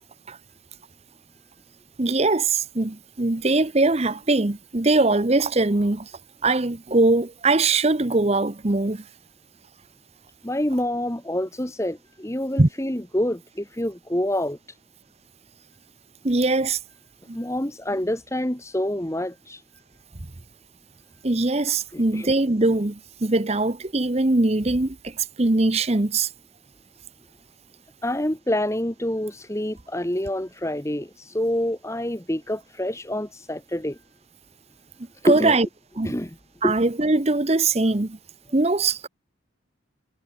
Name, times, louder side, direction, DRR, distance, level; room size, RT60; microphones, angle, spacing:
voice 1, 2.0-6.1 6.4-9.0 12.6-12.7 16.2-16.8 17.3-17.4 21.2-26.3 35.2-35.7 36.0-36.1 36.6-38.2 38.5-39.1, right 2 dB, 30° right, 0.9 m, -21 dB
voice 2, 10.4-14.6 17.3-19.6 21.9-22.3 28.0-34.0 35.2-35.6 36.0-36.3 36.6-36.7, left 1 dB, 15° left, 1.3 m, -27 dB
head